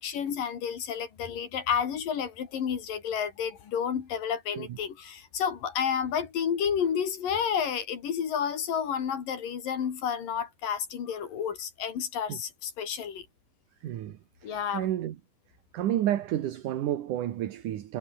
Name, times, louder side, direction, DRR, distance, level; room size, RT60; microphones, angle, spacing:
voice 1, 0.0-13.3 14.4-14.9, left 7 dB, 65° left, 4.3 m, -30 dB
voice 2, 13.8-15.2 15.7-18.0, right 12 dB, 65° right, 2.8 m, -31 dB
omnidirectional pair, 4.2 m